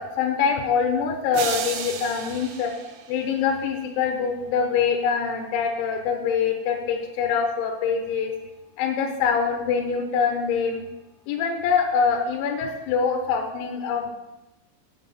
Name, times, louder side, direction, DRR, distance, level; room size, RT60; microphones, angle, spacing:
voice 1, 0.0-2.7 3.1-8.3 8.8-10.8 11.3-14.1, left 6 dB, 80° left, 3 dB, 3.2 m, -24 dB
sound 1, 1.3-3.7, right 7 dB, 90° right, 2.1 m, -33 dB
8.6 x 7.6 x 5.9 m, 1.0 s
omnidirectional pair, 5.7 m